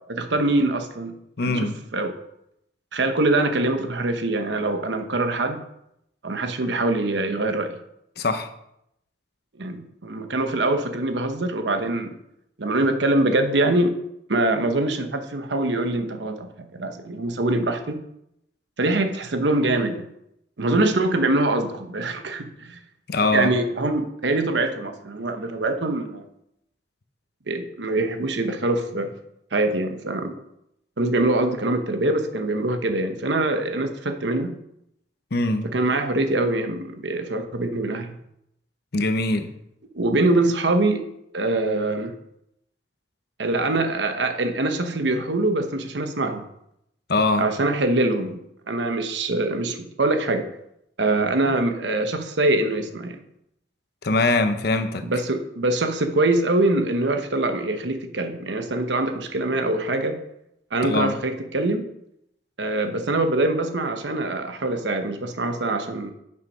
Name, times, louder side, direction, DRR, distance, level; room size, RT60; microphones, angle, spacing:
voice 1, 0.1-1.1 1.4-2.1 2.9-5.6 6.2-7.8 9.6-12.2 12.6-13.9 14.3-18.0 18.8-20.1 20.6-22.8 23.3-26.3 27.5-29.1 29.5-30.3 31.0-34.5 35.6-38.2 39.9-41.0 41.3-42.1 43.4-46.4 47.4-48.4 48.7-50.5 51.0-53.2 55.0-60.2 60.7-61.8 62.6-66.1, right 2 dB, 75° right, 6 dB, 1.0 m, -24 dB
voice 2, 1.4-1.8 8.2-8.5 23.1-23.5 35.3-35.7 38.9-39.5 47.1-47.5 54.0-55.0 60.8-61.2, left 2 dB, 60° left, 9 dB, 0.8 m, -22 dB
8.2 x 5.7 x 5.4 m, 0.79 s
head